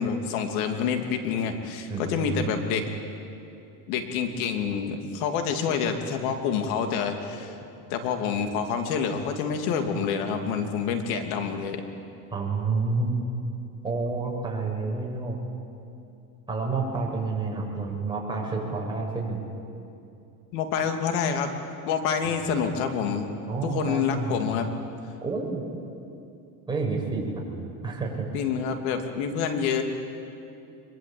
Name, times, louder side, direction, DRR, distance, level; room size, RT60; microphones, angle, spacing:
voice 1, 0.0-2.8 3.9-7.6 7.9-11.8 20.5-21.5 21.8-23.3 23.6-24.7 28.3-29.8, left 6 dB, 70° left, 5 dB, 3.0 m, -27 dB
voice 2, 1.9-2.7 12.3-13.2 13.8-15.4 16.5-19.4 23.5-24.5 25.2-25.6 26.7-27.4 27.8-28.2, right 3 dB, 10° right, -3 dB, 6.6 m, -29 dB
23.5 x 22.5 x 8.8 m, 2.7 s
supercardioid pair, 105°, 45 cm